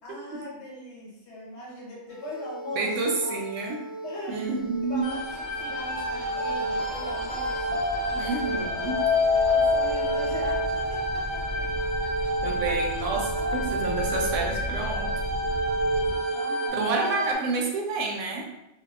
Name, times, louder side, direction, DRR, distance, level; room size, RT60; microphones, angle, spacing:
voice 1, 0.0-2.9 3.2-3.4 4.0-4.5 4.8-8.9 9.5-11.7 12.0-12.3 13.4-13.9 16.3-17.5, left 1 dB, 65° left, -5 dB, 1.1 m, -40 dB
sound 1, 2.2-16.7, left 1 dB, 20° right, 0.7 m, -30 dB
voice 2, 2.8-3.8 4.3-5.1 8.1-9.0 12.4-15.1 16.7-18.5, right 3 dB, 85° right, 0 dB, 0.9 m, -29 dB
sound 2, 4.8-16.2, equal, 55° right, 0.9 m, -37 dB
sound 3, 5.0-17.3, equal, 50° left, 0.4 m, -32 dB
2.6 x 2.2 x 2.3 m, 0.91 s
omnidirectional pair, 1.2 m